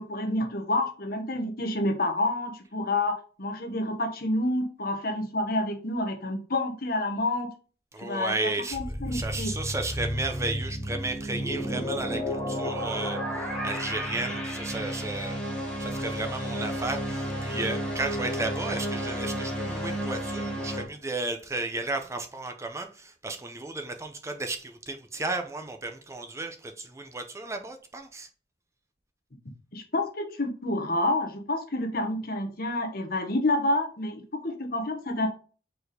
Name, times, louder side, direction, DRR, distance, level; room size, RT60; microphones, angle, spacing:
voice 1, 0.0-7.5 8.0-9.5 29.7-35.3, left 1 dB, 55° left, 1.2 m, -29 dB
voice 2, 7.9-8.8 9.1-15.4 15.8-28.3, right 2 dB, 15° right, 0.6 m, -34 dB
sound 1, 8.7-20.8, equal, 5° left, 1.3 m, -32 dB
4.7 x 4.2 x 5.0 m
head